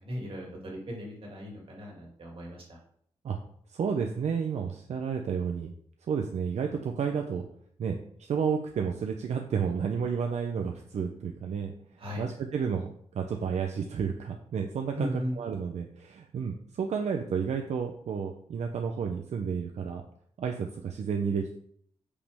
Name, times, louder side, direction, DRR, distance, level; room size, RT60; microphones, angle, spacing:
voice 1, 0.0-2.8 12.0-12.3 14.9-15.4, equal, 55° right, -1 dB, 2.4 m, -37 dB
voice 2, 3.7-5.7 6.1-7.4 7.8-8.0 8.3-11.7 12.2-20.0 20.4-21.6, right 6 dB, 80° right, 3 dB, 0.7 m, -31 dB
8.4 x 5.2 x 3.5 m, 0.65 s
wide cardioid pair, 135°, 11 cm